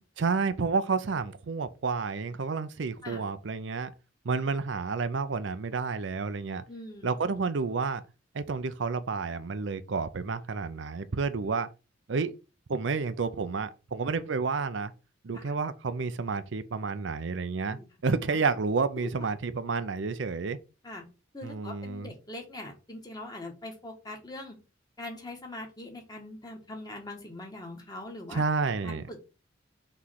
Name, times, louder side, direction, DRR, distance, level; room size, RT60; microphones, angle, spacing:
voice 1, 0.2-3.9 4.2-6.6 7.0-8.0 8.3-11.7 12.1-12.3 12.7-14.9 15.2-20.6 21.4-22.1 28.3-29.0, right 4 dB, 70° right, 0.5 m, -30 dB
voice 2, 6.7-7.2 15.3-15.5 17.7-17.8 19.2-19.3 20.8-21.1 21.3-24.6 25.0-28.4 28.8-29.3, left 1 dB, 20° left, 1.5 m, -42 dB
6.0 x 3.2 x 5.7 m
head